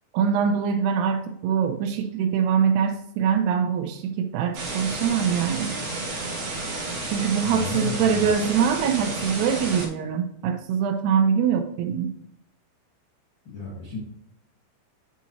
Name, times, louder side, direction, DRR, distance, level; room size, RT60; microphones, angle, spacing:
voice 1, 0.1-5.8 7.1-12.1, right 7 dB, 80° right, 6 dB, 2.5 m, -23 dB
sound 1, 4.5-9.9, right 2 dB, 65° right, 4.4 m, -31 dB
voice 2, 7.4-8.3 13.4-14.0, left 3 dB, 70° left, -6 dB, 1.1 m, -32 dB
11.0 x 4.2 x 2.9 m, 0.74 s
omnidirectional pair, 5.0 m